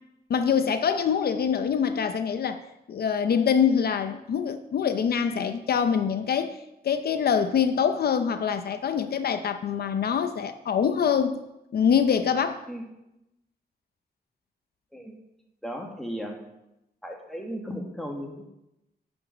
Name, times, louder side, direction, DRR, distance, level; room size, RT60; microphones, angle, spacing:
voice 1, 0.3-2.6 2.9-6.6 6.8-11.4 11.7-12.7, left 7 dB, 70° left, 9 dB, 0.6 m, -24 dB
voice 2, 15.6-16.4 17.0-18.5, equal, ahead, 1 dB, 1.5 m, -35 dB
11.0 x 5.2 x 6.1 m, 0.89 s
wide cardioid pair, 145°, 16 cm